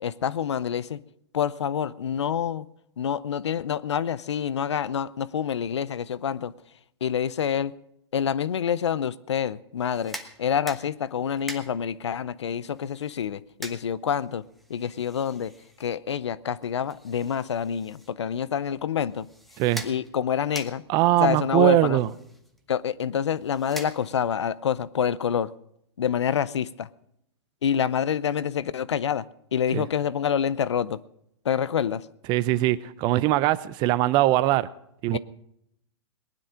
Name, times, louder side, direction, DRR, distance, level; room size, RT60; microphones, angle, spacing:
voice 1, 0.0-1.0 1.3-2.7 3.0-6.5 7.0-7.7 8.1-14.4 14.7-15.5 15.8-19.3 19.8-20.8 21.2-22.0 22.7-25.5 26.0-26.9 27.6-29.2 29.5-31.0 31.4-32.0 35.1-35.2, left 8 dB, 85° left, 0.6 m, -27 dB
sound 1, 9.8-24.4, equal, ahead, 1.1 m, -45 dB
voice 2, 20.9-22.1 29.7-29.9 32.3-34.7 35.0-35.2, right 15 dB, 30° right, 0.5 m, -21 dB
19.0 x 10.0 x 5.0 m
hypercardioid pair, 140°, 14 cm